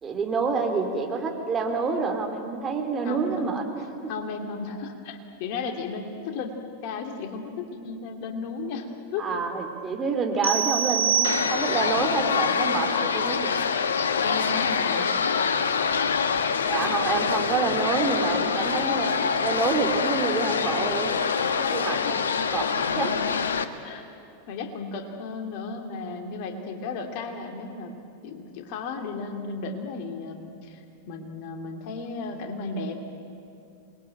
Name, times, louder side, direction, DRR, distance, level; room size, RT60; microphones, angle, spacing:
voice 1, 0.0-4.1 9.2-13.5 16.7-21.2 21.6-22.2 22.4-22.7 22.9-23.1, right 4 dB, 20° right, 3 dB, 3.4 m, -28 dB
voice 2, 3.0-3.5 4.1-6.5 6.8-9.3 14.2-15.1 21.9-22.2 23.8-24.1 24.5-27.9 28.2-33.0, left 4 dB, 45° left, 4 dB, 2.7 m, -34 dB
sound 1, 10.4-12.0, right 8 dB, 75° right, 1.8 m, -25 dB
sound 2, 11.2-23.6, left 6 dB, 70° left, 1.2 m, -25 dB
27.5 x 21.5 x 9.1 m, 2.6 s
figure-of-eight pair, 90°, 0 cm